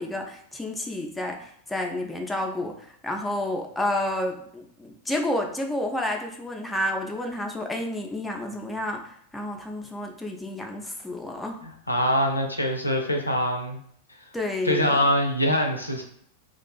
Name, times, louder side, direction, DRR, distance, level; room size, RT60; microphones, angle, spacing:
voice 1, 0.0-11.6 14.3-15.0, left 1 dB, 5° left, 1 dB, 0.3 m, -30 dB
voice 2, 11.9-13.8 14.6-16.0, equal, 85° left, 2 dB, 0.4 m, -23 dB
2.4 x 2.3 x 2.2 m, 0.66 s
figure-of-eight pair, 90°, 0 cm